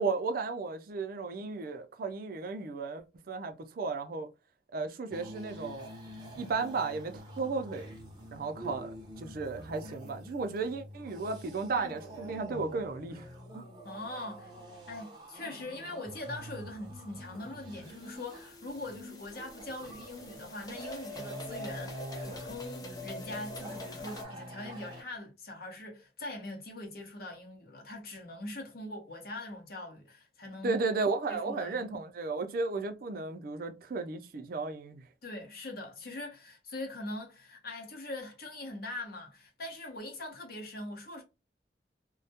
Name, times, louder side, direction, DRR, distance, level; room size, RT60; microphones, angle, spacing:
voice 1, 0.0-4.3 4.7-5.9 6.4-7.9 8.3-8.9 9.2-13.2 13.5-13.6 30.6-35.0, right 4 dB, 55° right, 0.4 m, -34 dB
sound 1, 5.1-25.0, equal, 25° right, 0.8 m, -46 dB
voice 2, 13.8-14.5 14.9-30.7 31.3-32.0 35.2-41.2, left 2 dB, 60° left, 0.8 m, -42 dB
sound 2, 17.8-24.2, left 2 dB, 20° left, 0.5 m, -46 dB
2.2 x 2.1 x 2.7 m
head